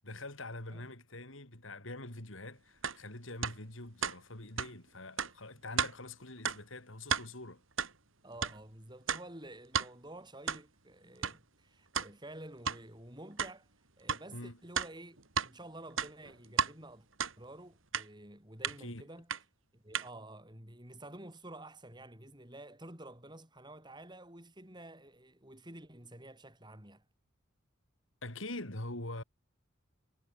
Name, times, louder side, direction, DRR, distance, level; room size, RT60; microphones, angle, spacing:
voice 1, 0.0-7.6 14.3-14.6 18.8-19.0 28.2-29.2, left 2 dB, 75° left, 4.6 m, -44 dB
sound 1, 2.8-3.0 3.4-3.6 4.0-4.2 4.6-4.7 5.2-5.3 5.8-5.9 6.5-6.6 7.0-7.3 7.8-7.9 8.4-8.6 9.1-9.2 9.7-9.9 10.5-10.6 11.2-11.4 11.9-12.1 12.7-12.8 13.4-13.5 14.1-14.2 14.8-15.5 15.9-16.7 17.2-17.3 17.9-18.1 18.6-18.8 19.3-19.4 19.9-20.1, right 6 dB, 80° right, 3.4 m, -33 dB
voice 2, 8.2-13.7 14.0-15.2 15.4-17.1 17.4-19.3 19.7-27.0, right 1 dB, 20° right, 8.0 m, -50 dB
head